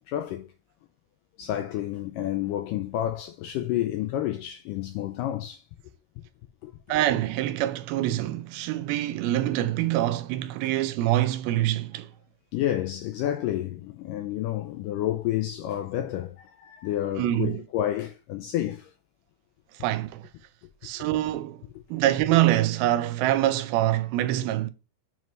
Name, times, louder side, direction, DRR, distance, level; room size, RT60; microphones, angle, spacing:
voice 1, 0.1-0.5 1.4-5.6 6.6-6.8 12.5-18.9 21.0-21.1, left 12 dB, 85° left, 1.9 m, -30 dB
voice 2, 6.9-12.1 17.2-17.6 19.8-20.3 20.8-21.6 21.9-24.7, right 14 dB, 85° right, 2.5 m, -25 dB
7.4 x 3.1 x 5.3 m
omnidirectional pair, 4.3 m